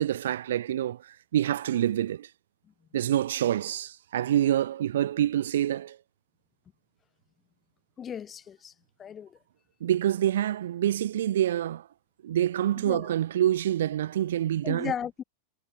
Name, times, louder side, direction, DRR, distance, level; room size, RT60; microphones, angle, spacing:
voice 1, 0.0-2.3 2.9-6.0 9.8-11.9 12.2-14.9, right 11 dB, 60° right, 0.6 m, -26 dB
voice 2, 8.0-8.7 9.0-9.3 12.8-13.1 14.6-15.2, left 8 dB, 25° left, 0.8 m, -35 dB
figure-of-eight pair, 90°, 0 cm